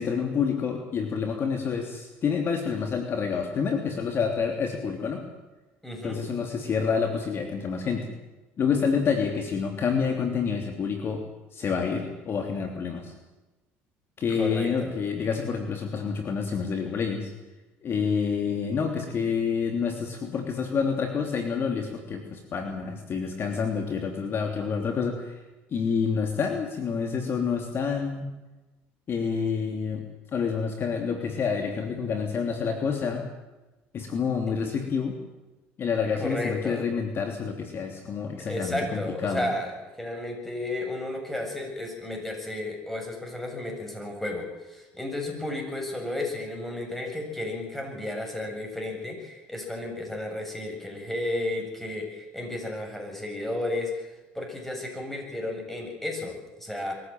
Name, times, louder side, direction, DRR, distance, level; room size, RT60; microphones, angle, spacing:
voice 1, 0.0-5.2 6.0-8.1 8.6-11.2 11.5-13.1 14.2-17.3 17.8-25.3 25.7-28.3 29.1-30.0 30.3-33.2 33.9-35.2 35.8-39.4, left 6 dB, 45° left, 4 dB, 3.1 m, -28 dB
voice 2, 5.8-6.2 14.4-14.9 36.2-36.8 38.5-39.7 40.0-54.1 54.3-56.9, left 1 dB, 5° left, 2 dB, 7.8 m, -33 dB
22.5 x 15.0 x 9.3 m, 1.1 s
supercardioid pair, 100°, 6 cm